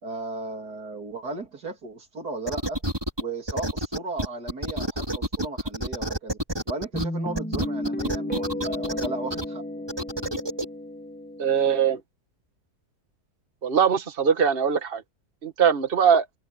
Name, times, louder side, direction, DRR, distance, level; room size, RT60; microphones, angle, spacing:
voice 1, 0.0-2.8 3.2-6.4 6.7-9.6, right 3 dB, 85° right, 3.7 m, -35 dB
sound 1, 2.5-3.2 3.5-7.0 7.4-9.4 9.9-10.6, right 1 dB, 15° right, 4.0 m, -28 dB
Guitar, 6.9-12.0, left 1 dB, 5° left, 2.0 m, -33 dB
voice 2, 11.4-12.0 13.6-15.0 15.4-16.3, right 7 dB, 40° right, 1.8 m, -21 dB
omnidirectional pair, 1.6 m